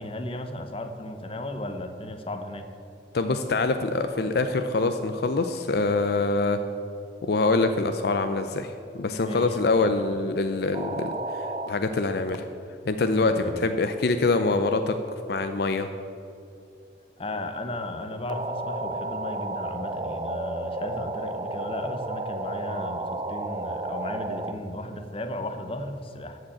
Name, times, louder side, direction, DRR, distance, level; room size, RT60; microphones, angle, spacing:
voice 1, 0.0-2.7 9.1-9.5 13.2-13.6 17.2-26.4, left 1 dB, 30° left, 7 dB, 0.8 m, -35 dB
voice 2, 3.1-6.6 7.2-12.4 12.9-14.9 15.3-15.9, left 3 dB, 60° left, 8 dB, 0.5 m, -25 dB
sound 1, 10.7-11.7 12.3-12.4 18.3-24.5, right 2 dB, 25° right, 0.5 m, -32 dB
14.0 x 5.1 x 8.6 m, 2.6 s
head